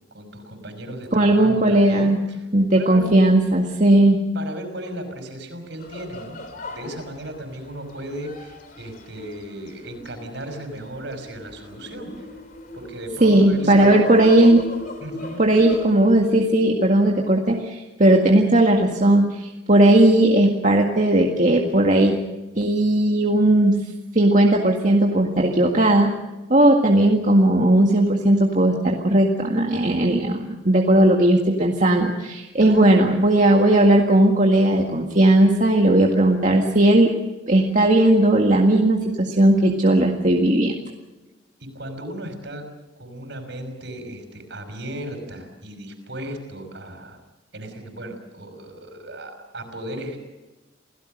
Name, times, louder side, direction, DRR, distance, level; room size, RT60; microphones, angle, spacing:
voice 1, 0.1-2.5 2.8-3.2 4.3-12.3 12.7-14.0 15.0-15.5 32.6-33.1 41.6-47.2 47.5-50.2, right 1 dB, 65° right, 6 dB, 5.7 m, -35 dB
voice 2, 1.1-2.2 2.5-4.2 13.2-14.6 15.4-22.2 22.6-23.8 24.1-26.1 26.5-37.1 37.5-40.8, right 1 dB, 40° right, 0 dB, 1.9 m, -17 dB
sound 1, 5.8-16.3, left 2 dB, 45° left, 3.3 m, -39 dB
28.5 x 17.5 x 6.6 m, 1.1 s
head